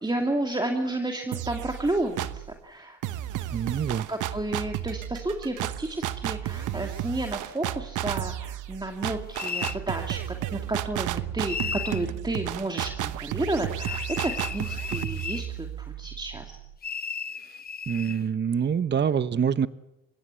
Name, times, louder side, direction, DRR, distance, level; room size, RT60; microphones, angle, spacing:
voice 1, 0.0-3.0 4.1-16.6, right 2 dB, 15° right, 4 dB, 2.6 m, -31 dB
sound 1, 1.3-2.5 3.0-16.7, right 13 dB, 85° right, 1.1 m, -33 dB
voice 2, 3.5-4.1 17.9-19.7, right 7 dB, 35° right, 15 dB, 0.9 m, -25 dB
sound 2, 9.3-9.8 11.5-12.0 13.8-15.5 16.8-18.2, left 6 dB, 30° left, 0.9 m, -34 dB
29.5 x 16.5 x 8.3 m, 0.94 s
cardioid pair, 90°, 30 cm